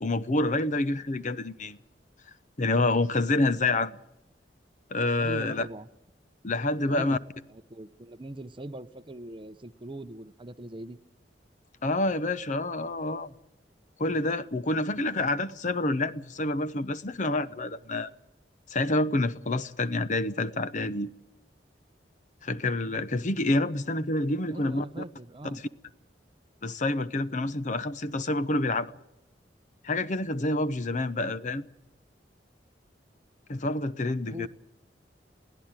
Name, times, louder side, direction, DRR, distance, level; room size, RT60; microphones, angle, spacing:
voice 1, 0.0-1.8 2.6-4.0 4.9-5.7 6.4-7.2 11.8-13.3 14.0-18.1 18.7-21.1 22.4-24.8 25.5-25.6 26.6-28.9 29.8-31.7 33.5-34.5, left 2 dB, 45° left, 0.8 m, -28 dB
voice 2, 5.2-5.9 6.9-7.2 7.5-11.0 24.5-25.6 34.3-34.5, right 1 dB, 30° right, 0.8 m, -41 dB
23.0 x 15.5 x 8.9 m
head